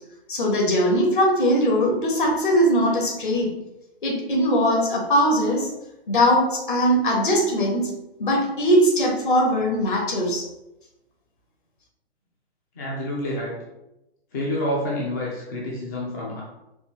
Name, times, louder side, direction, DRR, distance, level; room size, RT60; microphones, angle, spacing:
voice 1, 0.3-3.6 4.0-5.7 6.1-7.9 8.2-10.5, equal, 55° left, 0 dB, 1.2 m, -20 dB
voice 2, 12.8-13.5 14.3-16.4, left 1 dB, 20° left, -4 dB, 0.4 m, -28 dB
4.3 x 2.6 x 3.1 m, 0.91 s
figure-of-eight pair, 125°, 31 cm